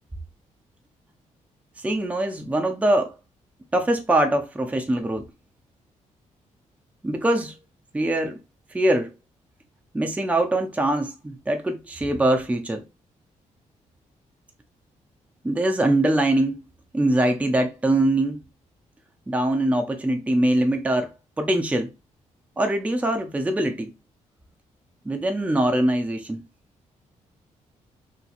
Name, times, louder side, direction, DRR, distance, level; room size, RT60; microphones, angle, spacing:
voice 1, 1.8-3.1 3.7-5.2 7.0-7.6 7.9-8.4 8.7-9.1 9.9-12.8 15.4-16.6 16.9-18.4 19.3-21.1 21.4-21.9 22.6-23.9 25.1-26.4, right 1 dB, 10° right, 0.5 m, -23 dB
2.8 x 2.8 x 2.5 m
cardioid pair, 85°, 13 cm